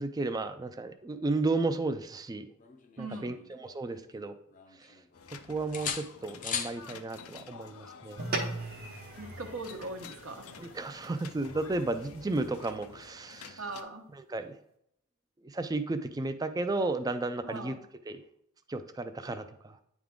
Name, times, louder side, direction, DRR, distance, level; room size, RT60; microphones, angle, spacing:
voice 1, 0.0-2.5 3.0-4.4 4.8-4.9 5.5-8.2 10.6-13.6 14.2-14.6 15.4-17.7 18.1-18.2 18.7-19.8, right 2 dB, 15° right, 9 dB, 0.3 m, -33 dB
sound 1, 2.6-4.1 4.5-5.3 5.7-6.8 8.7-8.9, left 7 dB, 35° left, 0.5 m, -39 dB
voice 2, 3.0-3.5 9.2-10.5 13.6-14.1 17.4-17.8, right 2 dB, 70° right, 5 dB, 0.9 m, -40 dB
sound 2, 5.1-13.8, left 6 dB, 85° left, 0.5 m, -50 dB
sound 3, 8.2-12.8, right 2 dB, 45° right, 0.9 m, -40 dB
9.3 x 3.6 x 3.6 m, 0.75 s
head